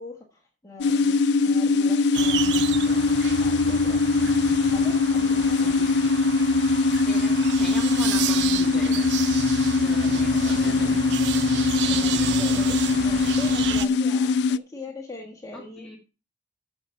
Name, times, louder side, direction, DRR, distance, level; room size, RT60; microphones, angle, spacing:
voice 1, 0.0-4.4 4.7-5.8 10.5-10.9 11.9-15.9, left 2 dB, 20° left, 1.3 m, -42 dB
sound 1, 0.8-14.6, left 4 dB, 65° left, 0.4 m, -22 dB
sound 2, 2.1-13.9, right 9 dB, 70° right, 0.4 m, -32 dB
voice 2, 5.6-6.2 7.1-9.1 9.8-11.0 15.5-16.0, left 1 dB, ahead, 1.6 m, -39 dB
7.9 x 6.6 x 5.6 m
head